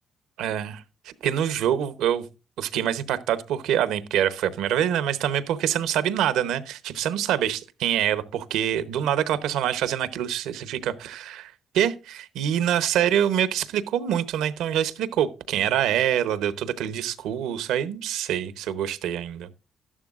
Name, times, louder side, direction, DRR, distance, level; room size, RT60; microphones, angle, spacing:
voice 1, 0.4-2.2 2.6-19.5, right 10 dB, 90° right, 0.9 m, -25 dB
12.5 x 11.0 x 2.5 m
cardioid pair, 90°, 0 cm